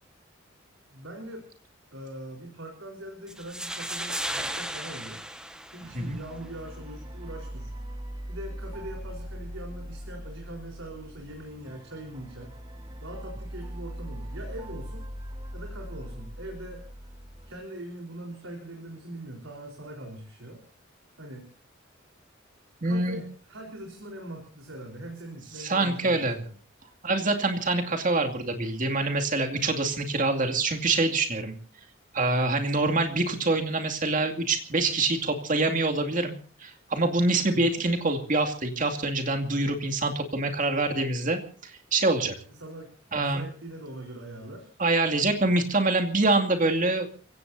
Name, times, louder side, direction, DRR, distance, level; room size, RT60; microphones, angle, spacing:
voice 1, 0.9-1.4 1.9-5.2 5.7-7.7 8.3-12.5 13.0-15.1 15.5-16.9 17.5-20.6 21.2-21.5 22.8-26.5 32.8-32.9 37.5-37.8 42.5-44.7, right 1 dB, 90° right, 0 dB, 4.2 m, -42 dB
sound 1, 3.3-6.3, right 1 dB, 5° right, 1.4 m, -35 dB
sound 2, 5.8-17.5, equal, 25° right, 1.4 m, -40 dB
voice 2, 22.8-23.2 25.6-26.4 27.0-31.5 32.1-36.3 36.6-42.3 43.1-43.5 44.8-47.1, right 2 dB, 40° right, 4 dB, 2.4 m, -25 dB
29.5 x 16.5 x 2.7 m, 0.39 s
head